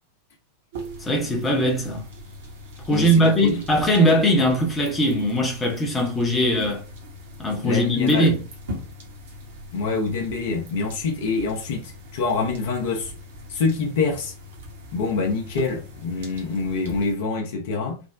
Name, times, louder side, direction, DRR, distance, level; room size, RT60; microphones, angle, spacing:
sound 1, 0.7-17.1, left 1 dB, 60° right, 0.9 m, -41 dB
voice 1, 1.0-2.0 2.9-6.8 7.4-8.4, equal, 15° left, 0.7 m, -20 dB
voice 2, 2.9-3.6 7.6-8.4 9.7-13.1 13.5-14.3 14.9-18.0, left 4 dB, 55° left, 0.7 m, -26 dB
3.3 x 2.1 x 2.4 m
figure-of-eight pair, 90°, 0 cm